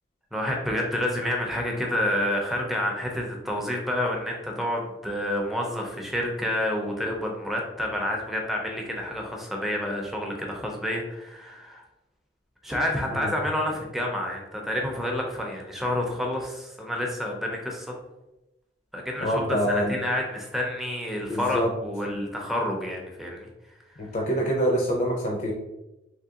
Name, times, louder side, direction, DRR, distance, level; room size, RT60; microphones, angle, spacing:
voice 1, 0.3-11.8 12.6-18.0 18.9-23.5 24.0-24.1, left 1 dB, ahead, 0 dB, 0.6 m, -29 dB
voice 2, 19.2-20.0 21.3-21.7 24.0-25.5, equal, 45° left, -1 dB, 0.5 m, -25 dB
3.6 x 2.8 x 2.8 m, 0.96 s
head